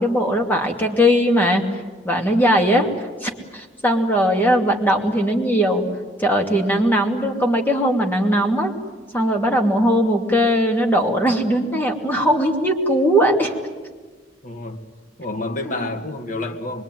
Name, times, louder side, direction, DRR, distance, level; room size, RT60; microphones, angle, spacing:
voice 1, 0.0-1.7 2.0-2.9 3.2-5.8 6.2-8.7 9.1-13.5 15.6-15.8, equal, 10° left, 1 dB, 2.7 m, -19 dB
voice 2, 14.4-14.8 15.2-16.8, left 2 dB, 45° left, 4 dB, 2.2 m, -29 dB
25.0 x 22.5 x 9.3 m, 1.4 s
head